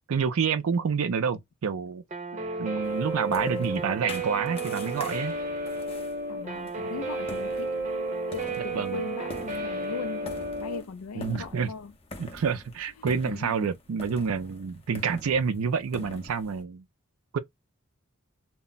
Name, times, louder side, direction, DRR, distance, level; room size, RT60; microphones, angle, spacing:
voice 1, 0.1-2.0 2.6-5.3 8.7-9.0 11.1-11.7 12.2-16.8 17.3-17.4, right 6 dB, 80° right, 0.4 m, -28 dB
Guitar, 2.1-10.8, right 2 dB, 35° right, 0.7 m, -32 dB
voice 2, 2.3-2.6 3.4-3.8 6.2-7.8 8.3-11.9 13.0-13.7, left 4 dB, 85° left, 0.4 m, -40 dB
sound 1, 2.8-16.6, left 2 dB, 25° left, 0.6 m, -46 dB
2.1 x 2.0 x 3.7 m
head